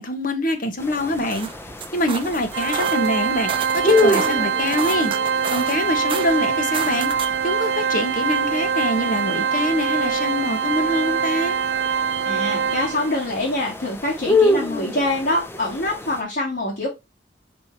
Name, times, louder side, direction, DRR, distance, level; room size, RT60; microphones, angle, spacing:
voice 1, 0.0-1.5 1.9-3.5 3.8-5.1 5.5-11.6, left 1 dB, 50° left, 1.2 m, -24 dB
sound 1, 0.8-16.2, left 2 dB, 15° left, 0.7 m, -28 dB
sound 2, 1.0-7.5, right 6 dB, 30° right, 0.6 m, -32 dB
Organ, 2.5-13.3, right 7 dB, 70° right, 0.3 m, -24 dB
voice 2, 12.2-16.9, left 1 dB, 70° left, 2.5 m, -25 dB
5.6 x 5.0 x 4.2 m
head